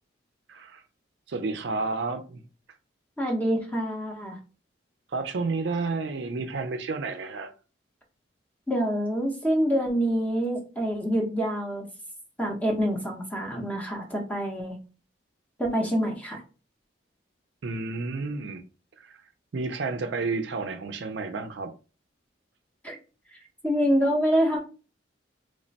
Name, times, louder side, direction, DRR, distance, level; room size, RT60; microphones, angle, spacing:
voice 1, 0.5-0.8 1.3-2.4 5.1-7.5 17.6-18.6 19.0-19.2 19.5-21.7, right 3 dB, 60° right, 0.4 m, -31 dB
voice 2, 3.2-4.4 8.7-11.9 12.4-14.8 15.6-16.4 22.8-22.9 23.6-24.6, equal, 10° left, 0.8 m, -26 dB
3.2 x 2.1 x 3.9 m
head